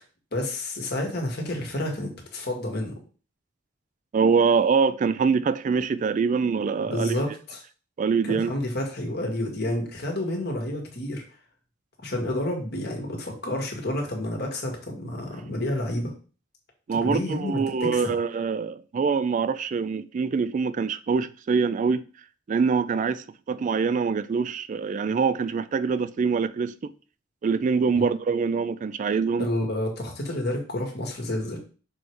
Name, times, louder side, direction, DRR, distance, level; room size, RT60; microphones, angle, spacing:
voice 1, 0.3-2.9 6.9-7.6 8.2-11.2 12.0-16.1 17.0-18.1 27.9-28.0 29.4-31.6, left 1 dB, 55° left, 1.7 m, -29 dB
voice 2, 4.1-7.2 8.0-8.5 16.9-22.1 22.5-26.9 27.4-29.5, right 5 dB, 40° right, 0.3 m, -24 dB
6.2 x 3.3 x 4.7 m
head